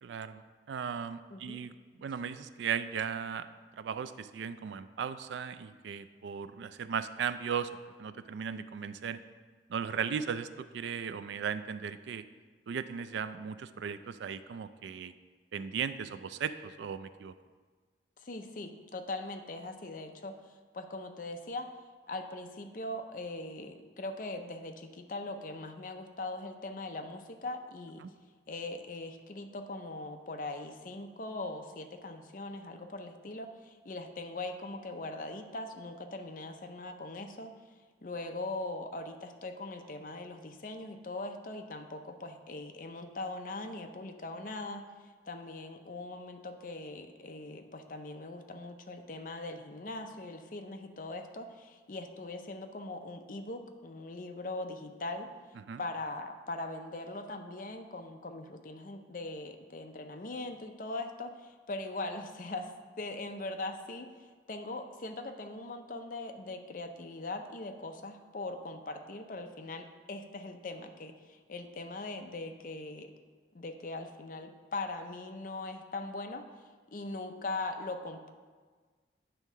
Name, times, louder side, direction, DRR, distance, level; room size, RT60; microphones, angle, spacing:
voice 1, 0.0-1.7 2.0-7.7 8.0-9.2 9.7-12.2 12.7-15.1 15.5-17.3 28.0-28.1 55.7-55.8, right 7 dB, 75° right, 12 dB, 0.3 m, -37 dB
voice 2, 18.2-21.8 22.1-28.0 28.5-37.5 38.0-55.3 55.8-73.1 73.5-76.4 76.9-78.3, left 2 dB, 45° left, 6 dB, 0.5 m, -41 dB
9.0 x 3.6 x 5.5 m, 1.5 s
head